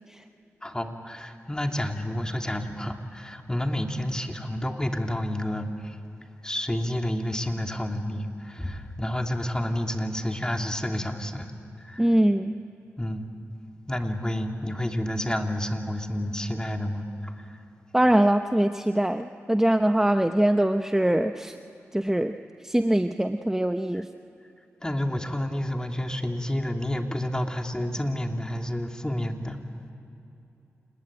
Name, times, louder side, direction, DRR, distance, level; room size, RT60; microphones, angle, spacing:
voice 1, 0.6-6.0 6.4-11.5 11.8-12.0 13.0-13.3 13.9-17.3 24.8-29.6, left 1 dB, 15° left, 3 dB, 3.0 m, -29 dB
voice 2, 12.0-12.6 17.9-21.6 21.9-22.3 22.6-24.1, right 1 dB, 10° right, 8 dB, 0.9 m, -23 dB
29.0 x 20.0 x 9.0 m, 2.8 s
cardioid pair, 45°, 5 cm